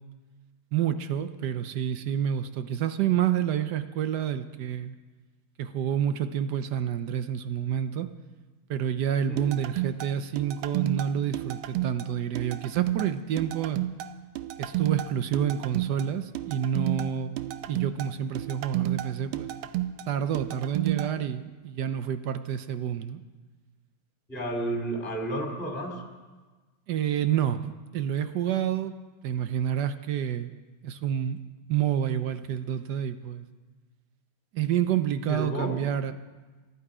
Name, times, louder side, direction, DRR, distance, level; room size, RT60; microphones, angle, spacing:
voice 1, 0.7-5.0 5.6-8.1 8.7-13.8 14.6-17.3 17.7-19.5 20.1-23.2 26.9-29.0 29.2-30.5 30.8-31.4 31.7-33.4 34.5-36.1, right 9 dB, 65° right, 10 dB, 1.1 m, -28 dB
sound 1, 9.4-21.1, right 13 dB, 85° right, 1.6 m, -32 dB
voice 2, 24.3-26.0 35.2-35.8, right 1 dB, 5° left, 1 dB, 2.4 m, -31 dB
25.5 x 11.0 x 4.9 m, 1.3 s
omnidirectional pair, 2.3 m